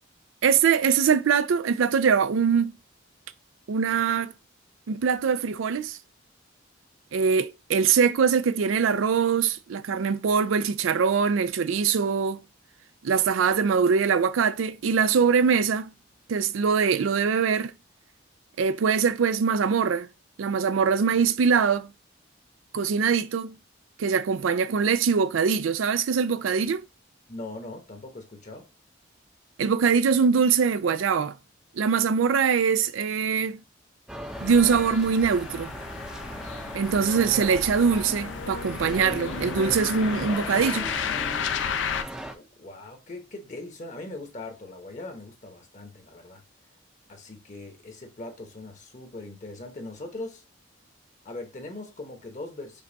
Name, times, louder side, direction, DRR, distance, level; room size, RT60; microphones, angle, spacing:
voice 1, 0.4-2.7 3.7-4.3 4.9-6.0 7.1-12.4 13.0-15.9 16.3-17.7 18.6-20.1 20.4-21.9 22.7-23.6 24.0-26.8 29.6-31.4 31.8-33.6 34.4-35.7 36.7-40.9, right 6 dB, 85° right, 0.4 m, -23 dB
voice 2, 27.3-28.7 42.3-46.4 47.1-50.4 51.2-52.8, left 2 dB, 40° left, 0.9 m, -40 dB
sound 1, 34.1-42.3, right 1 dB, 5° right, 0.5 m, -38 dB
sound 2, 34.3-42.0, left 7 dB, 70° left, 0.4 m, -33 dB
5.2 x 2.3 x 3.9 m
head